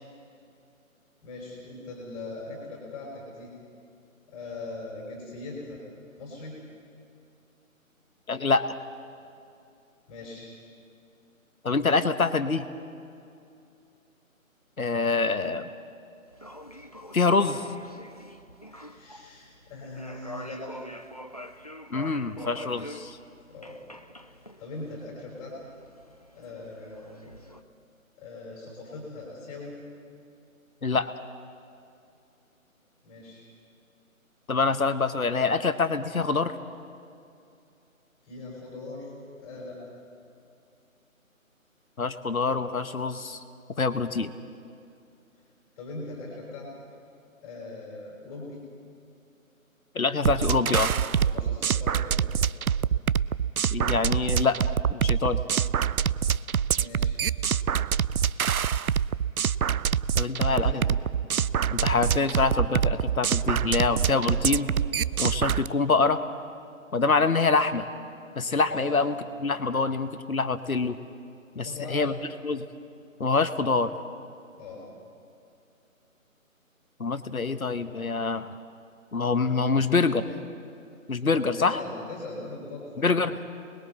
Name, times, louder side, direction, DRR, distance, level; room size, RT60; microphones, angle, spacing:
voice 1, 1.2-3.5 4.3-5.8 6.2-6.6 10.1-10.5 18.7-20.8 23.5-23.8 24.6-25.6 26.3-27.3 28.2-29.8 33.0-33.4 38.2-39.8 45.8-46.7 47.4-48.6 51.2-52.2 56.7-57.2 60.5-60.8 68.7-68.9 71.6-72.2 74.6-74.8 81.3-83.1, left 2 dB, 10° left, -3 dB, 4.6 m, -40 dB
voice 2, 8.3-8.7 11.6-12.6 14.8-15.7 17.1-17.7 21.9-23.2 30.8-31.1 34.5-36.5 42.0-43.4 43.8-44.3 49.9-50.9 53.7-54.6 54.9-55.4 60.2-60.8 61.7-64.7 65.2-66.2 66.9-67.9 68.3-71.0 71.5-72.1 72.4-72.7 73.2-73.9 77.0-78.6 79.1-80.2 81.1-81.8 83.0-83.3, left 4 dB, 75° left, 10 dB, 1.2 m, -25 dB
sound 1, 16.3-27.6, left 1 dB, 30° left, 0.5 m, -45 dB
sound 2, 50.3-65.7, right 8 dB, 85° right, 0.5 m, -25 dB
29.5 x 21.0 x 4.2 m, 2.6 s
figure-of-eight pair, 150°, 42 cm